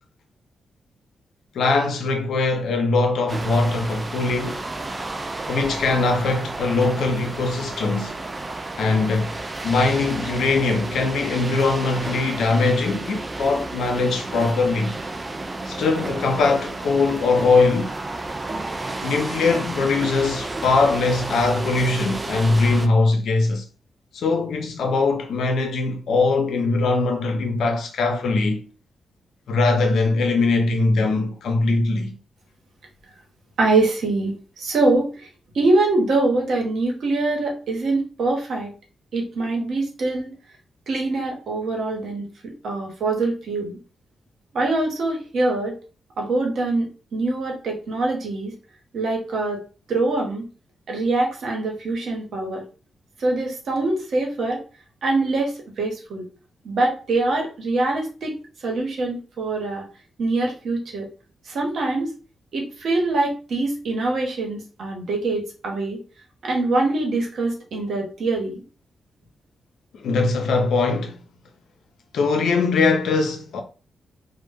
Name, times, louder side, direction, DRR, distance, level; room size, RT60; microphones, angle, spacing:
voice 1, 1.5-4.6 5.5-8.2 8.8-14.9 15.7-17.9 19.0-23.7 24.1-28.7 29.5-32.1 69.9-71.2 72.1-73.6, left 3 dB, 80° left, 0.5 m, -21 dB
sound 1, 3.3-22.9, right 2 dB, 30° right, 0.3 m, -31 dB
voice 2, 33.6-35.3 35.5-38.7 39.1-40.3 40.9-43.8 44.5-45.8 46.2-48.5 48.9-49.6 49.9-50.4 50.9-52.6 53.2-54.6 55.0-56.2 56.6-58.4 58.6-59.8 60.2-61.1 61.5-62.1 62.5-66.0 66.4-68.6, right 2 dB, 75° right, 0.8 m, -24 dB
2.1 x 2.0 x 3.3 m
cardioid pair, 60°, 0 cm